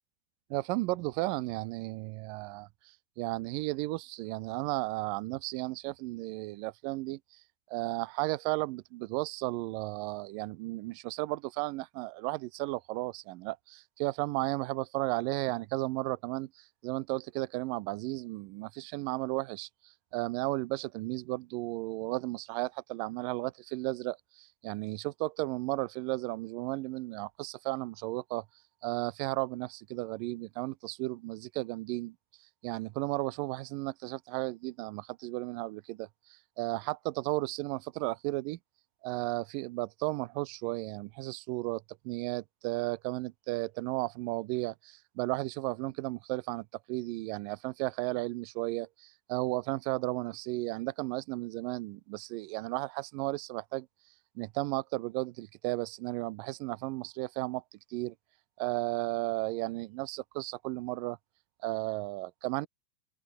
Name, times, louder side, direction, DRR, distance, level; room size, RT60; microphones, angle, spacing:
voice 1, 0.5-7.4 7.7-28.4 28.8-32.2 32.6-38.6 39.0-53.9 54.4-57.6 57.9-58.1 58.6-61.2 61.6-62.7, right 21 dB, 80° right, 2.3 m, -34 dB
open air
omnidirectional pair, 4.0 m